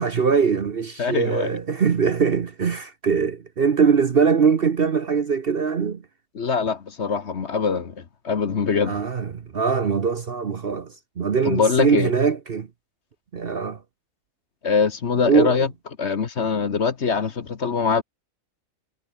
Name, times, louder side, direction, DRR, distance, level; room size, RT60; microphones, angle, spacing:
voice 1, 0.0-6.0 8.8-12.7 13.3-13.8 15.2-15.6, right 6 dB, 45° right, 1.0 m, -22 dB
voice 2, 1.0-1.6 6.3-9.0 11.4-12.1 14.6-15.7 16.0-18.0, left 5 dB, 50° left, 1.5 m, -23 dB
omnidirectional pair, 1.6 m